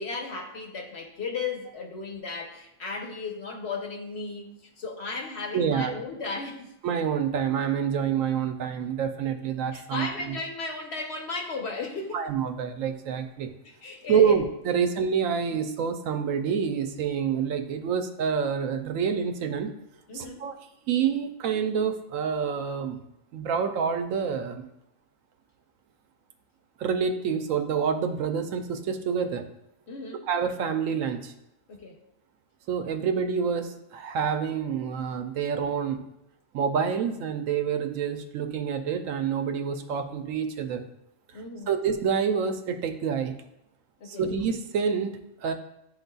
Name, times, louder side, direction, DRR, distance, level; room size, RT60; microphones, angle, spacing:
voice 1, 0.0-4.5 4.8-6.7 9.7-12.3 13.6-14.4 20.1-20.4 29.9-30.3 31.7-32.0 41.3-41.7 44.0-44.2, left 4 dB, 55° left, 1 dB, 1.1 m, -35 dB
voice 2, 5.5-5.9 6.8-10.4 12.1-13.5 14.1-19.7 20.1-20.6 20.8-23.0 23.3-24.6 26.8-29.4 30.3-31.3 32.7-36.0 36.5-40.8 41.7-43.3 44.1-45.5, right 7 dB, 80° right, 7 dB, 1.0 m, -27 dB
11.0 x 4.0 x 2.3 m, 0.85 s
omnidirectional pair, 1.4 m